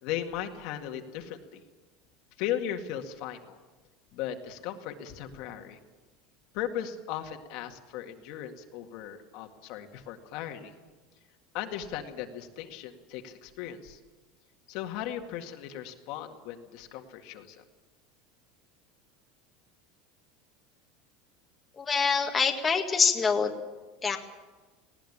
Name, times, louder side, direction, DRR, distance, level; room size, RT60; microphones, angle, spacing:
voice 1, 0.0-1.6 2.4-3.6 4.1-5.8 6.5-10.7 11.5-14.0 14.7-17.6, left 10 dB, 60° left, 4 dB, 2.0 m, -37 dB
voice 2, 21.8-23.5 24.0-24.2, left 5 dB, 20° left, 2 dB, 1.9 m, -25 dB
19.0 x 18.0 x 8.7 m, 1.2 s
supercardioid pair, 140°, 0 cm